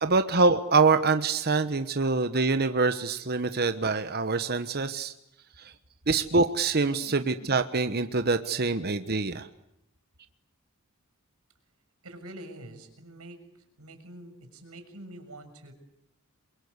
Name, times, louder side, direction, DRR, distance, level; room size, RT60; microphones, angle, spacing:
voice 1, 0.0-5.1 5.6-5.7 6.1-9.5, right 3 dB, 45° right, 9 dB, 1.2 m, -25 dB
voice 2, 12.0-13.4 13.8-15.7, right 1 dB, 75° right, 7 dB, 6.5 m, -46 dB
29.0 x 23.0 x 8.3 m, 0.79 s
head